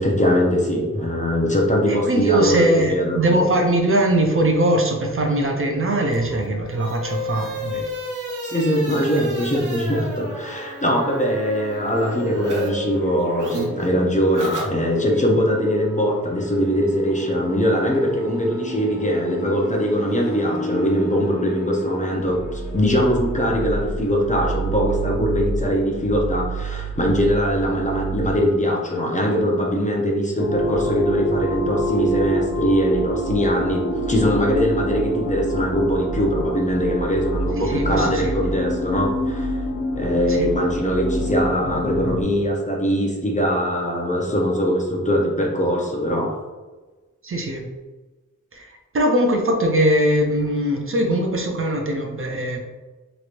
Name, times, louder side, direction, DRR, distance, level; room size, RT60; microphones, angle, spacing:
voice 1, 0.0-3.4 8.4-39.6 39.9-46.4, equal, 25° left, -1 dB, 0.7 m, -21 dB
voice 2, 1.9-7.8 37.6-38.4 40.3-40.5 47.2-47.7 48.5-52.6, right 1 dB, 45° right, 2 dB, 0.5 m, -21 dB
sound 1, 6.1-12.7 13.0-15.2, equal, 75° right, 0.8 m, -32 dB
sound 2, 11.9-28.4, right 3 dB, 90° left, 1.1 m, -31 dB
sound 3, 30.4-42.2, right 1 dB, 60° left, 0.7 m, -26 dB
3.0 x 3.0 x 2.5 m, 1.2 s
wide cardioid pair, 70°, 31 cm